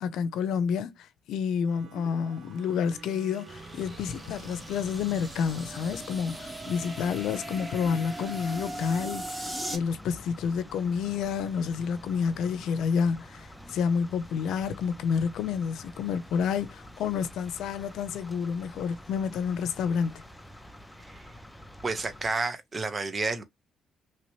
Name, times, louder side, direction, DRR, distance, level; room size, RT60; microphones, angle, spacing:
voice 1, 0.0-20.2, left 6 dB, 80° left, 0.6 m, -29 dB
Wind instrument woodwind instrument, 1.6-6.0, right 6 dB, 65° right, 1.0 m, -50 dB
sound 1, 1.8-9.8, right 1 dB, 10° right, 1.3 m, -40 dB
sound 2, 3.5-22.3, left 1 dB, 5° left, 0.6 m, -48 dB
voice 2, 21.0-21.3 21.8-23.4, right 3 dB, 30° right, 0.9 m, -31 dB
3.0 x 2.9 x 3.0 m
cardioid pair, 90°, 0 cm